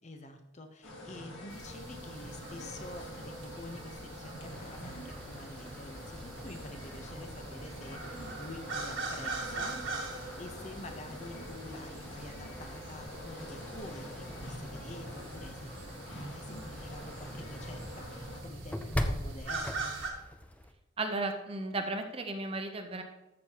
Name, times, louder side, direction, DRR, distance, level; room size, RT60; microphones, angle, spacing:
voice 1, 0.0-15.7 16.3-20.0, left 2 dB, 35° left, 6 dB, 0.8 m, -48 dB
sound 1, 0.8-18.4, equal, 60° left, 1.9 m, -46 dB
sound 2, 1.5-20.1, right 3 dB, 60° right, 1.8 m, -43 dB
sound 3, 4.5-20.7, left 1 dB, 5° left, 0.4 m, -44 dB
voice 2, 21.0-23.0, right 2 dB, 25° right, 5 dB, 0.7 m, -34 dB
13.5 x 6.5 x 2.9 m, 0.97 s
head